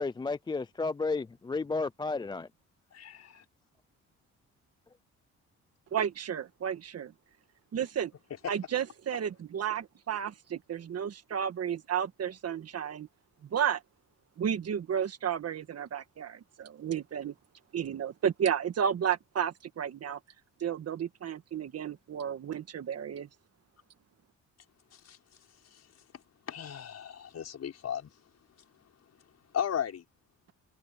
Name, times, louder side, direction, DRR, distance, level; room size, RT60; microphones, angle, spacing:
voice 1, 0.0-2.5, left 3 dB, 15° left, 0.4 m, -32 dB
voice 2, 2.9-3.4 24.9-25.2 25.7-25.8 26.5-28.1 29.5-30.0, left 9 dB, 55° left, 6.1 m, -36 dB
voice 3, 5.9-7.1 7.7-8.1 8.5-13.1 13.4-13.8 14.4-17.3 17.7-20.2 20.6-23.3, right 8 dB, 55° right, 1.7 m, -32 dB
cardioid pair, 90°, 30 cm